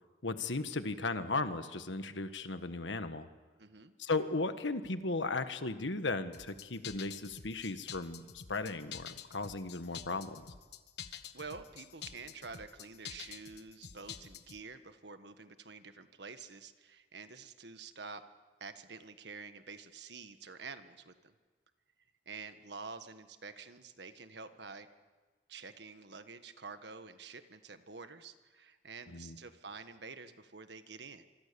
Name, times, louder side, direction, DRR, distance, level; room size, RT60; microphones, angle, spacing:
voice 1, 0.2-3.3 4.0-8.2 8.5-10.5 29.1-29.4, left 3 dB, 85° left, 10 dB, 1.5 m, -36 dB
voice 2, 3.6-3.9 11.3-18.2 18.6-21.3 22.2-24.9 25.5-31.2, right 4 dB, 70° right, 9 dB, 1.5 m, -48 dB
sound 1, 6.3-14.6, left 8 dB, 65° left, 1.2 m, -48 dB
25.5 x 25.0 x 7.0 m, 1.4 s
head